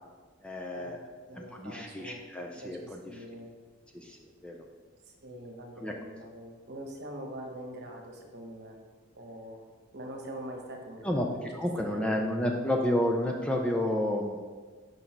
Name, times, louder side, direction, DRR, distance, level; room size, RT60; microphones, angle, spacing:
voice 1, 0.4-1.0 1.3-3.0 3.9-4.6 5.8-5.9 11.0-11.3 11.5-14.4, left 1 dB, 5° left, 0 dB, 0.4 m, -30 dB
voice 2, 1.3-2.2 2.5-3.5 5.1-8.8 9.1-9.6 9.9-11.5 11.8-12.6 12.9-13.1, right 1 dB, 55° right, 2 dB, 1.1 m, -43 dB
6.2 x 5.3 x 4.4 m, 1.5 s
head